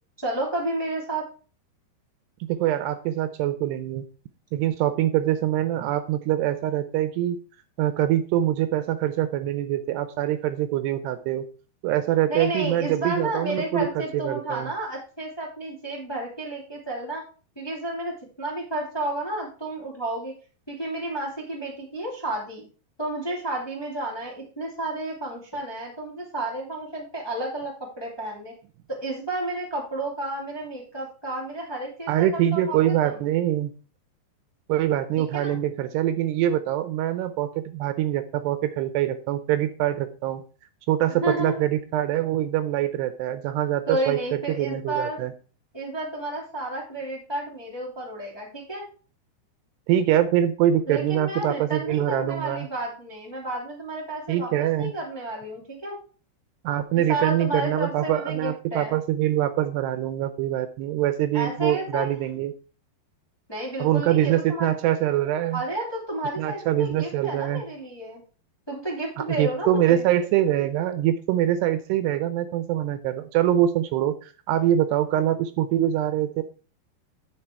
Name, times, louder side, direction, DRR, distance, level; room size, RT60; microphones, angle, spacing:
voice 1, 0.2-1.2 12.3-17.2 17.6-20.3 20.7-22.7 23.0-28.5 29.0-33.2 35.2-35.5 41.2-41.6 43.9-45.2 45.7-48.9 50.9-54.5 54.8-56.0 57.1-59.0 61.3-62.1 63.5-64.8 65.5-68.2 68.7-70.0, right 2 dB, 10° left, -3 dB, 1.8 m, -31 dB
voice 2, 2.5-4.1 4.5-7.4 7.8-11.5 11.8-14.7 32.1-33.7 34.7-40.4 40.9-45.3 49.9-52.7 54.3-54.9 56.6-62.5 63.8-65.6 66.4-67.6 69.2-76.4, right 12 dB, 80° right, 11 dB, 2.7 m, -24 dB
9.8 x 6.7 x 4.5 m, 0.38 s
omnidirectional pair, 5.0 m